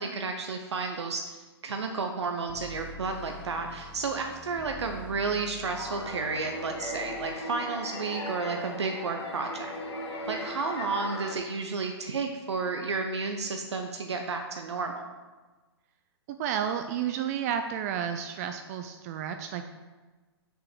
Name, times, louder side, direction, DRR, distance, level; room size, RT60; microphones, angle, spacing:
voice 1, 0.0-1.4 1.6-9.7 10.3-15.1, right 4 dB, 85° right, 4 dB, 0.8 m, -32 dB
sound 1, 2.5-7.3, left 1 dB, 10° right, 1.1 m, -47 dB
sound 2, 5.6-11.3, left 1 dB, 85° left, 1.9 m, -38 dB
voice 2, 16.4-19.6, right 8 dB, 35° right, 7 dB, 0.5 m, -31 dB
6.5 x 4.8 x 6.1 m, 1.3 s
hypercardioid pair, 130°, 14 cm